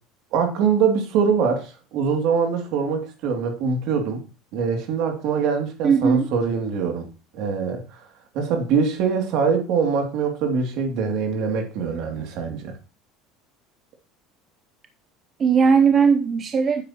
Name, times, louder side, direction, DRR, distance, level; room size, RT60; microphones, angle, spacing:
voice 1, 0.3-4.2 4.5-7.1 7.3-8.0 8.3-12.7, right 5 dB, 60° right, 2.5 m, -23 dB
voice 2, 5.8-6.3 15.4-16.8, right 6 dB, 30° right, 0.6 m, -18 dB
9.3 x 7.7 x 2.9 m
supercardioid pair, 140°, 0 cm